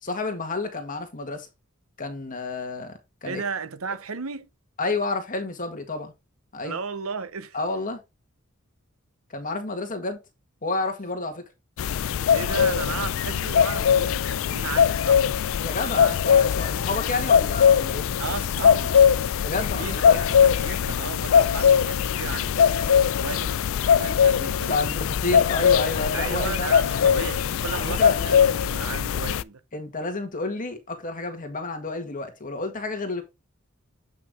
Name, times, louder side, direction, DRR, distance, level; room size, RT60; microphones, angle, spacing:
voice 1, 0.0-1.5 2.0-2.9 3.2-3.4 4.8-6.1 6.5-6.8 7.5-8.0 9.3-10.2 10.6-11.4 15.6-18.1 19.4-20.2 24.7-26.7 27.0-27.2 27.7-28.1 29.7-33.2, left 3 dB, 40° left, 1.8 m, -30 dB
voice 2, 3.2-4.5 6.6-7.6 12.3-16.2 18.2-18.9 19.7-24.8 26.1-29.6, right 5 dB, 75° right, 0.9 m, -35 dB
sound 1, 11.8-29.4, left 7 dB, 70° left, 0.4 m, -21 dB
8.2 x 5.9 x 3.7 m
head